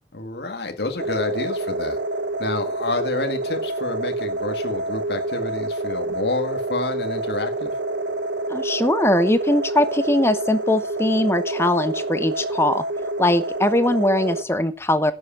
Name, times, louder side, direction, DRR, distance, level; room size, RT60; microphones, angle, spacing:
voice 1, 0.1-2.0 2.4-7.7, left 2 dB, 70° left, 5 dB, 1.8 m, -29 dB
sound 1, 1.0-14.4, right 2 dB, 90° right, 1.0 m, -27 dB
voice 2, 8.5-12.8 13.2-15.1, left 1 dB, 15° left, 13 dB, 0.8 m, -21 dB
11.0 x 7.9 x 7.3 m, 0.36 s
head